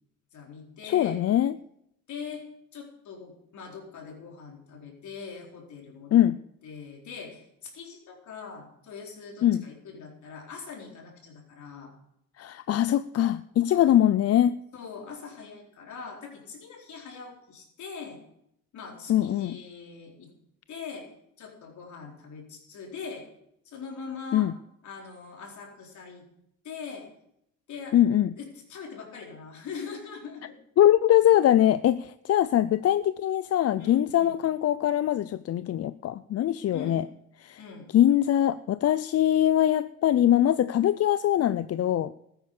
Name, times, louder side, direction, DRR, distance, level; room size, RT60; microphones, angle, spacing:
voice 1, 0.3-1.2 2.1-2.4 2.7-6.3 6.6-11.9 13.7-13.9 14.7-18.2 18.7-20.3 20.7-21.1 21.4-23.3 23.6-24.5 24.8-26.2 26.6-27.1 27.7-28.0 28.4-30.6 33.8-34.3 36.7-37.0 37.6-37.9, left 5 dB, 70° left, 0 dB, 4.3 m, -42 dB
voice 2, 0.8-1.6 6.1-6.4 9.4-9.6 12.4-14.6 19.1-19.6 24.3-24.5 27.9-28.3 30.8-37.0 37.4-37.6 37.9-42.1, left 11 dB, 55° left, 15 dB, 0.5 m, -22 dB
14.0 x 9.7 x 6.6 m, 0.76 s
cardioid pair, 90°, 30 cm